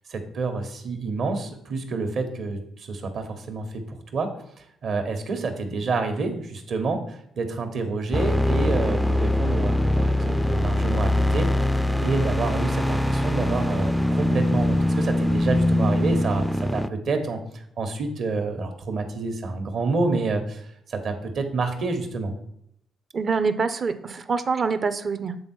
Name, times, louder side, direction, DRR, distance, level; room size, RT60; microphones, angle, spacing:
voice 1, 0.1-4.3 4.8-11.5 12.0-17.4 17.8-22.3, right 3 dB, 60° right, 6 dB, 1.2 m, -28 dB
sound 1, 8.1-16.9, left 1 dB, 5° left, 0.3 m, -22 dB
voice 2, 23.1-25.4, right 5 dB, 45° right, 11 dB, 0.5 m, -25 dB
7.6 x 3.9 x 4.4 m, 0.74 s
cardioid pair, 90°, 0 cm